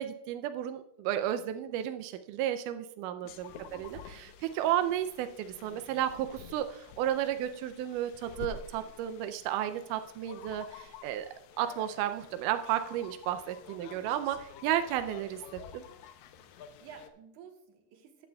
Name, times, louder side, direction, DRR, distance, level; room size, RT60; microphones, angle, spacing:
voice 1, 0.0-11.3 11.6-15.4 15.7-15.8, right 11 dB, 85° right, 9 dB, 1.8 m, -33 dB
sound 1, 3.2-17.1, left 8 dB, 85° left, 1.6 m, -50 dB
voice 2, 3.5-3.9 13.8-14.1 16.8-18.3, right 6 dB, 65° right, 4 dB, 2.5 m, -51 dB
14.5 x 9.4 x 2.2 m, 0.82 s
omnidirectional pair, 4.1 m